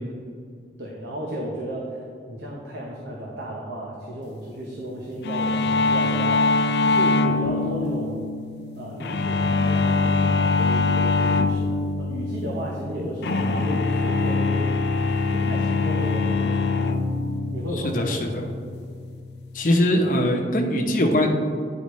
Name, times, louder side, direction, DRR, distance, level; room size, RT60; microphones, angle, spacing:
voice 1, 0.8-6.5 6.8-8.2 8.8-14.7 15.3-16.8 17.4-18.4, right 1 dB, 75° right, -3 dB, 0.9 m, -33 dB
sound 1, 5.2-19.7, left 3 dB, 70° left, 0.4 m, -24 dB
voice 2, 17.9-18.4 19.5-21.3, left 1 dB, 45° left, 1 dB, 0.8 m, -21 dB
9.8 x 5.0 x 3.1 m, 2.2 s
head